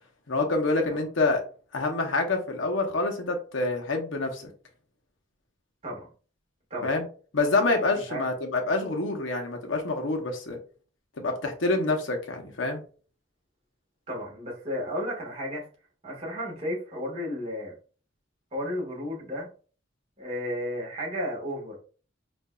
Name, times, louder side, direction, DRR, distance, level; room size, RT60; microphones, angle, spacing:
voice 1, 0.3-1.4 1.7-4.4 6.8-7.0 7.3-10.6 11.2-12.8, left 3 dB, 80° left, 3 dB, 0.9 m, -27 dB
voice 2, 7.9-8.2 14.1-15.7 16.0-17.7 18.5-19.5 20.2-21.8, equal, 35° right, -3 dB, 1.5 m, -33 dB
5.1 x 2.6 x 2.3 m, 0.40 s
head